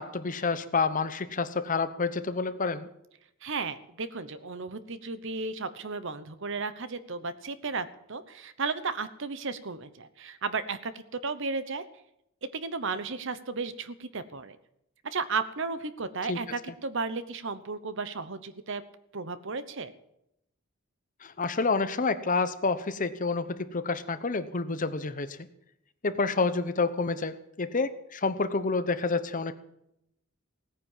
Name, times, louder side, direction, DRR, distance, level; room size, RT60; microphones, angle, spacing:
voice 1, 0.0-2.9 16.3-16.4 21.2-25.4 26.0-29.5, left 4 dB, 40° left, 11 dB, 0.9 m, -28 dB
voice 2, 3.4-11.8 12.5-14.6 15.0-18.8 19.1-19.9, right 4 dB, 65° right, 13 dB, 1.0 m, -34 dB
17.0 x 9.6 x 7.4 m, 0.80 s
head